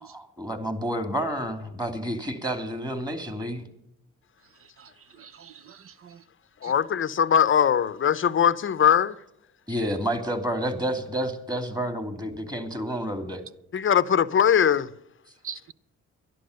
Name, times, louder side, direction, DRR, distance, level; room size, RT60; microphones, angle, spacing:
voice 1, 0.0-3.6 9.7-13.4, equal, 15° right, 2.7 m, -30 dB
voice 2, 5.2-6.2 6.6-6.7 15.4-15.7, right 8 dB, 45° right, 0.8 m, -43 dB
voice 3, 6.6-9.2 13.7-14.9, left 8 dB, 40° left, 0.7 m, -21 dB
12.5 x 11.5 x 6.5 m
cardioid pair, 90°, 30 cm